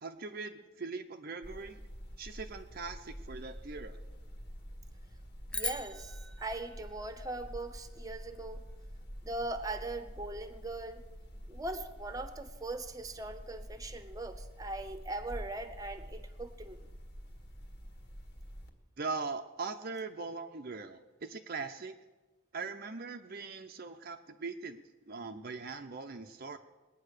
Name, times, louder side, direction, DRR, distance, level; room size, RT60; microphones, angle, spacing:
voice 1, 0.0-1.8 2.2-4.0 19.0-22.0 22.5-26.6, right 4 dB, 45° right, 5 dB, 0.6 m, -41 dB
sound 1, 1.4-18.7, equal, 50° left, 1.8 m, -47 dB
sound 2, 5.5-7.9, left 2 dB, 5° left, 0.4 m, -41 dB
voice 2, 5.5-8.6 9.2-11.0 11.5-16.8, right 2 dB, 15° right, 10 dB, 0.9 m, -40 dB
21.0 x 9.2 x 6.6 m, 1.2 s
head